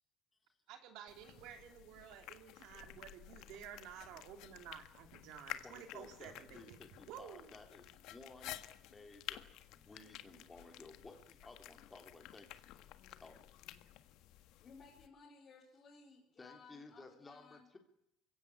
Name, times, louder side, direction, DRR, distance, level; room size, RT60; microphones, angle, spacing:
voice 1, 0.7-6.8 7.1-7.5, right 9 dB, 70° right, 6 dB, 3.1 m, -52 dB
sound 1, 1.1-15.1, left 14 dB, 70° left, 1.5 m, -53 dB
voice 2, 5.6-12.6 13.2-13.4 16.4-17.8, left 3 dB, 20° left, 3 dB, 3.5 m, -56 dB
voice 3, 14.6-17.7, left 4 dB, 40° left, -3 dB, 5.2 m, -59 dB
22.5 x 16.5 x 8.8 m, 0.81 s
cardioid pair, 115°, 0 cm